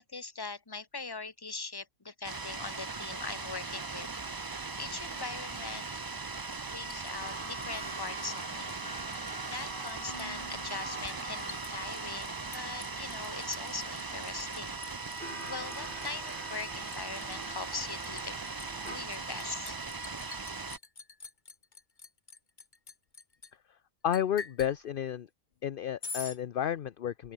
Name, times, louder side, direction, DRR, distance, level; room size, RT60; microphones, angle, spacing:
voice 1, 0.0-4.1 4.4-5.9 6.7-8.8 9.2-18.4 18.8-19.8, left 4 dB, 20° left, 1.2 m, -41 dB
sound 1, 2.2-20.8, right 4 dB, 25° right, 0.5 m, -39 dB
Liquid, 6.5-8.4 8.7-9.3 9.6-23.5 24.1-24.7 26.0-26.4, left 4 dB, 35° left, 1.7 m, -47 dB
sound 2, 7.2-19.0, right 2 dB, 40° right, 4.7 m, -46 dB
voice 2, 24.0-25.3 25.6-27.3, left 10 dB, 55° left, 0.7 m, -31 dB
open air
omnidirectional pair, 1.3 m